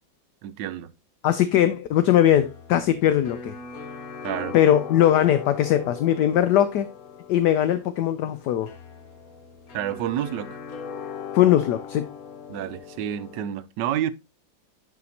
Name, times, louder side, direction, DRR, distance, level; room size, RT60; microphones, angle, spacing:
voice 1, 0.4-0.9 4.2-4.5 9.7-10.6 12.5-14.1, right 11 dB, 75° right, 1.2 m, -29 dB
voice 2, 1.2-3.5 4.5-6.9 7.3-8.7 11.3-12.1, left 11 dB, 70° left, 1.1 m, -20 dB
sound 1, 1.9-13.4, left 6 dB, 55° left, 1.3 m, -40 dB
11.0 x 4.2 x 2.8 m
omnidirectional pair, 2.1 m